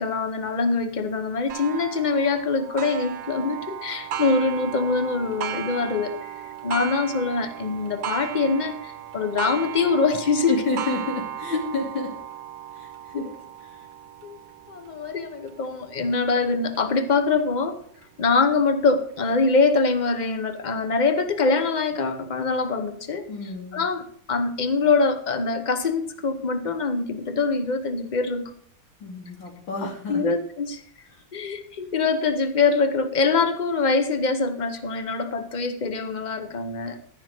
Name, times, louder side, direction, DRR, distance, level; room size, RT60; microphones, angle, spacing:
voice 1, 0.0-6.3 6.6-10.6 14.2-14.4 14.7-17.8 18.2-23.3 23.7-28.5 29.8-30.8 31.3-37.0, left 4 dB, 45° left, 10 dB, 0.6 m, -24 dB
Clock, 1.5-16.8 17.4-17.5 18.0-18.1 19.1-19.2, right 10 dB, 65° right, 1.2 m, -36 dB
voice 2, 10.5-12.2 12.7-13.4 13.6-13.9 23.3-23.9 29.0-30.3 31.1-31.2, left 3 dB, 75° left, -1 dB, 3.7 m, -30 dB
14.0 x 5.8 x 6.5 m, 0.62 s
omnidirectional pair, 2.1 m